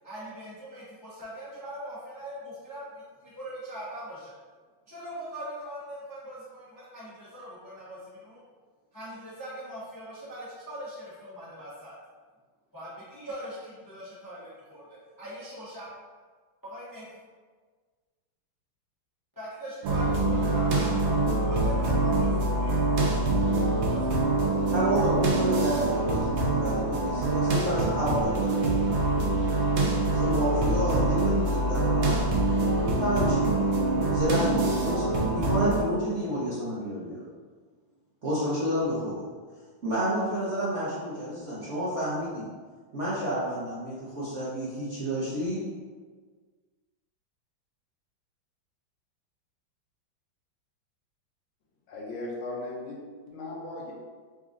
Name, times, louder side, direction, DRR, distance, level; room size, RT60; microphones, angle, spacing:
voice 1, 0.0-2.9 3.2-4.3 4.9-8.4 8.9-12.0 12.7-14.4 14.7-14.8 15.2-15.9 16.6-17.1 19.4-21.1 21.5-22.8 23.4-24.2, equal, 30° left, -9 dB, 0.3 m, -41 dB
sound 1, 19.8-35.8, right 2 dB, 75° right, 1.4 m, -25 dB
voice 2, 24.7-29.0 30.1-35.0 35.3-37.2 38.2-39.2 39.8-42.5 42.9-45.6, equal, 50° right, -10 dB, 0.9 m, -30 dB
voice 3, 51.9-53.9, left 2 dB, 80° left, -2 dB, 1.5 m, -37 dB
4.1 x 2.6 x 3.6 m, 1.5 s
omnidirectional pair, 2.2 m